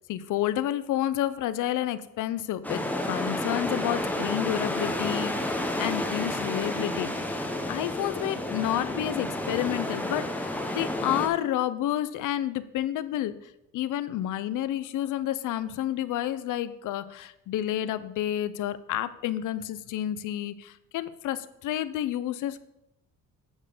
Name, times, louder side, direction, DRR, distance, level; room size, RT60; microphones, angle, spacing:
voice 1, 0.1-7.1 7.7-13.4 13.7-22.6, left 12 dB, 60° left, 15 dB, 0.6 m, -30 dB
sound 1, 2.6-11.3, left 1 dB, 5° left, 0.9 m, -30 dB
8.8 x 4.5 x 6.6 m, 0.85 s
cardioid pair, 160°, 34 cm